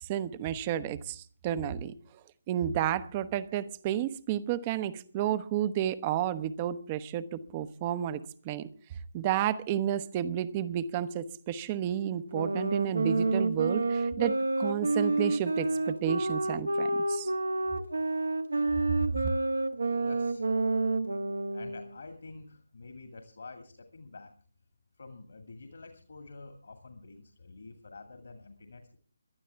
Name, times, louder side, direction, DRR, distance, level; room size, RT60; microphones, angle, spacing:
voice 1, 0.0-1.9 2.5-8.7 9.1-17.3, right 10 dB, 20° right, 0.8 m, -31 dB
sound 1, 12.3-22.0, right 2 dB, 65° right, 1.2 m, -29 dB
voice 2, 20.0-20.6 21.5-24.3 25.0-29.0, left 3 dB, 55° left, 2.2 m, -48 dB
22.0 x 12.0 x 3.5 m
figure-of-eight pair, 145°, 0 cm